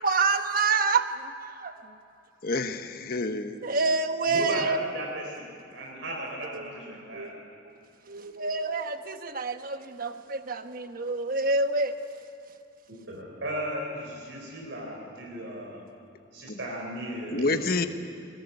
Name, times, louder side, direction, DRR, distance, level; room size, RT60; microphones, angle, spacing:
voice 1, 0.0-1.7 3.6-4.8 6.5-6.7 7.1-7.3 8.1-11.9, right 3 dB, 50° right, 8 dB, 1.2 m, -27 dB
voice 2, 2.4-3.6 16.5-16.6 17.3-17.9, left 3 dB, 55° left, 8 dB, 1.1 m, -28 dB
voice 3, 4.3-7.4 13.1-15.8 16.3-17.6, right 1 dB, 80° right, -1 dB, 4.0 m, -36 dB
21.5 x 18.5 x 9.7 m, 2.7 s
head